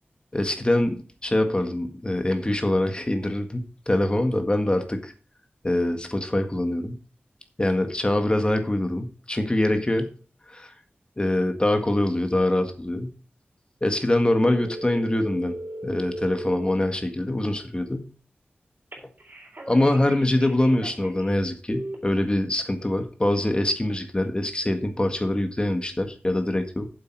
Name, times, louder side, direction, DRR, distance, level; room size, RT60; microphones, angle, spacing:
voice 1, 0.3-3.6 3.9-5.1 5.6-7.0 7.6-10.1 10.5-10.7 11.2-13.1 13.8-15.5 15.8-18.1 19.7-26.9, left 1 dB, 25° left, 6 dB, 1.7 m, -24 dB
sound 1, 14.5-16.7 18.9-21.3 21.7-21.9, right 1 dB, 50° right, 3.8 m, -37 dB
8.4 x 7.8 x 4.8 m, 0.39 s
wide cardioid pair, 85°, 4 cm